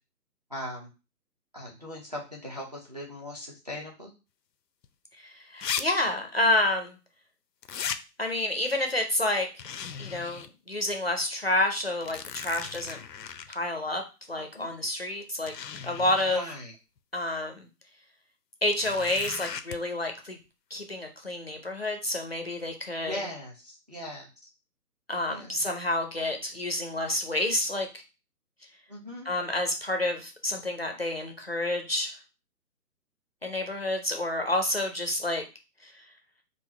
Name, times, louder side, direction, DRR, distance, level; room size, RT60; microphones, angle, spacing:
voice 1, 0.5-0.9 1.5-4.1 14.6-14.7 16.3-16.7 23.0-24.3 25.3-25.6 28.9-29.3, equal, 25° right, -1 dB, 0.7 m, -39 dB
sound 1, 4.8-4.9 5.6-5.8 6.1-6.2 7.6-8.0 9.6-10.5 10.9-11.0 11.8-13.5 14.7-14.8 15.5-16.4 18.7-19.8, left 7 dB, 80° left, 0.7 m, -36 dB
voice 2, 5.2-7.0 8.2-9.5 10.0-13.0 13.5-14.0 14.3-15.5 15.8-16.4 17.1-17.7 18.6-20.4 20.7-23.2 25.1-28.0 29.2-32.2 33.4-35.4 35.8-36.1, left 1 dB, 40° left, 3 dB, 0.6 m, -29 dB
3.9 x 2.5 x 4.2 m, 0.30 s
hypercardioid pair, 175°, 49 cm